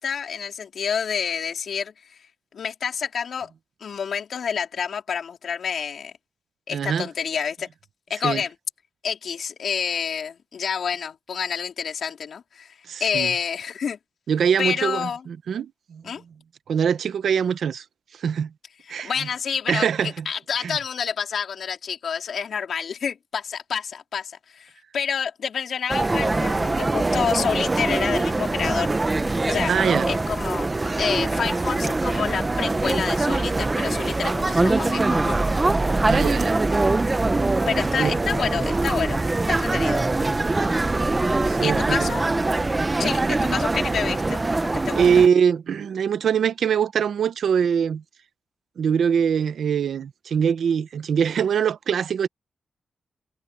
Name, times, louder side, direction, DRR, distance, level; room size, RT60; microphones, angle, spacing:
voice 1, 0.0-1.9 2.5-3.5 3.8-6.1 6.7-7.7 8.1-8.5 9.0-12.7 13.0-14.0 14.6-15.2 16.0-16.2 19.0-19.9 20.3-28.9 29.4-29.7 30.1-30.7 31.0-35.4 37.7-39.2 39.5-40.0 41.6-42.3 43.0-45.0, left 7 dB, 60° left, 3.9 m, -28 dB
voice 2, 6.7-7.1 8.2-8.4 12.9-13.3 14.3-16.0 16.7-17.8 18.2-18.5 18.9-19.1 19.7-20.3 20.6-20.8 29.7-30.1 36.0-36.6 38.0-38.1 41.5-42.1 45.0-48.0 48.8-52.3, right 7 dB, 65° right, 1.0 m, -23 dB
sound 1, 25.9-45.3, right 2 dB, 20° right, 0.7 m, -23 dB
wide cardioid pair, 165°, 0 cm